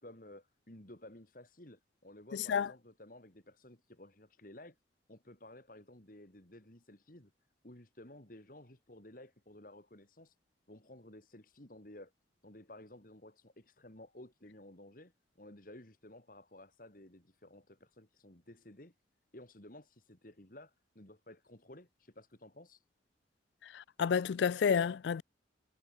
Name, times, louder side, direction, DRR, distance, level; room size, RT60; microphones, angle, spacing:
voice 1, 0.0-4.8 5.1-7.3 7.6-10.4 10.7-12.1 12.4-18.9 19.3-22.8, left 1 dB, 45° left, 2.5 m, -54 dB
voice 2, 2.3-2.7 23.6-25.2, left 6 dB, 70° left, 0.3 m, -30 dB
head